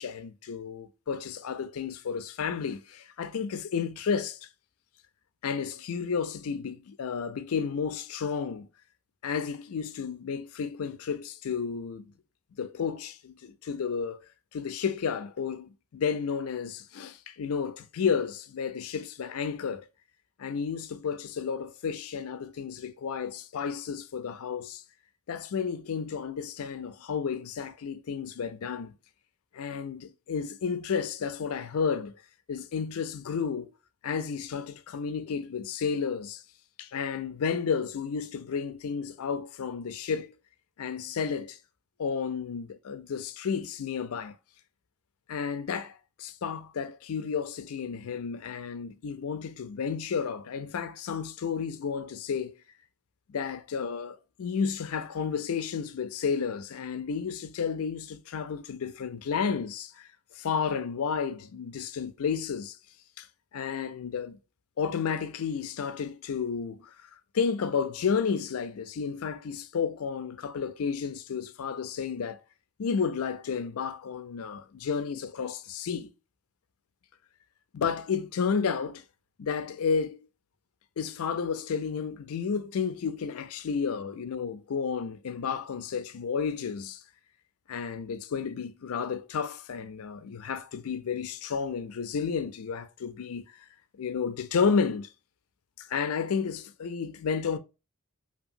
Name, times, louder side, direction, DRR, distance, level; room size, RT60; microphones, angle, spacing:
voice 1, 0.0-4.5 5.4-8.7 9.2-12.1 12.6-14.2 14.5-19.9 20.4-24.8 25.3-28.9 29.5-32.2 32.5-33.7 34.0-36.4 36.8-40.3 40.8-41.6 42.0-44.4 45.3-52.5 53.3-60.1 60.4-62.8 63.2-63.3 63.5-64.4 64.8-66.9 67.3-72.4 72.8-76.1 77.7-79.0 79.4-80.2 81.0-87.0 87.7-93.5 94.0-95.1 95.8-97.6, left 6 dB, 80° left, 0.4 m, -32 dB
2.8 x 2.8 x 2.5 m
head